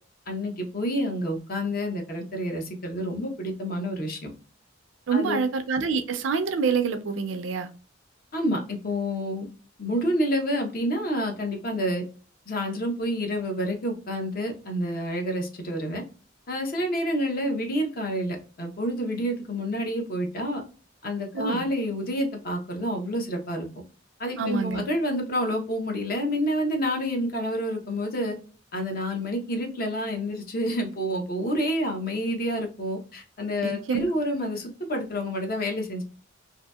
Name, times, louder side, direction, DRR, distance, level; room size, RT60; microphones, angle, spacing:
voice 1, 0.3-4.3 5.1-5.4 8.3-9.5 9.8-12.0 12.5-16.0 16.5-20.6 21.0-23.7 24.2-28.4 28.7-36.0, equal, 50° left, 0.7 m, -28 dB
voice 2, 5.1-7.7 21.3-21.7 24.4-24.8 33.6-34.0, right 5 dB, 75° right, 0.4 m, -26 dB
2.7 x 2.6 x 2.2 m
head